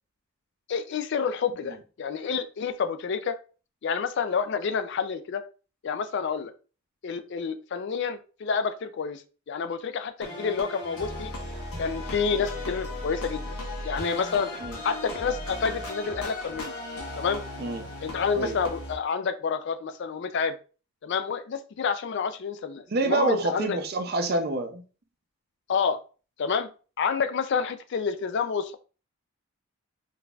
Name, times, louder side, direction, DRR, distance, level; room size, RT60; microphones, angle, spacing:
voice 1, 0.7-3.4 3.8-5.4 5.8-6.5 7.0-9.2 9.5-11.3 11.8-13.5 13.8-14.5 14.8-16.7 17.2-17.4 18.0-20.6 21.0-23.8 25.7-26.0 26.4-26.7 27.0-28.8, left 6 dB, 50° left, 10 dB, 0.3 m, -28 dB
sound 1, 10.2-19.0, left 1 dB, 80° left, 1.1 m, -36 dB
voice 2, 22.9-24.8, right 2 dB, 45° right, 6 dB, 0.5 m, -27 dB
3.8 x 2.6 x 2.3 m, 0.36 s
head